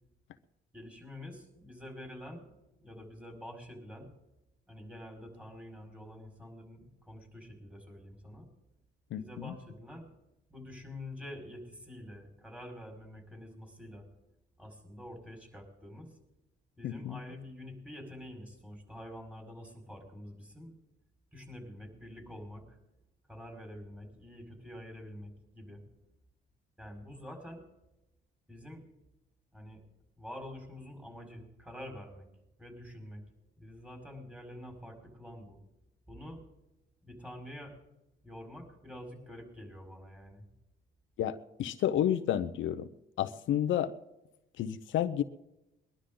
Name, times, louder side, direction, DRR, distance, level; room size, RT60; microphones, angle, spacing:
voice 1, 0.7-2.5 2.8-4.1 4.7-8.5 9.2-10.1 10.5-14.1 14.6-16.1 16.7-20.7 21.3-22.8 23.3-25.8 26.8-27.6 28.5-28.9 29.5-29.8 30.2-32.3 32.6-33.2 33.6-35.6 36.1-36.4 37.0-37.7 38.2-40.5, left 1 dB, 5° right, 2 dB, 5.0 m, -47 dB
voice 2, 16.8-17.2 41.2-42.9 43.2-43.9 44.6-45.2, left 10 dB, 75° left, 10 dB, 0.7 m, -30 dB
21.5 x 11.5 x 3.8 m, 0.90 s
cardioid pair, 90°, 20 cm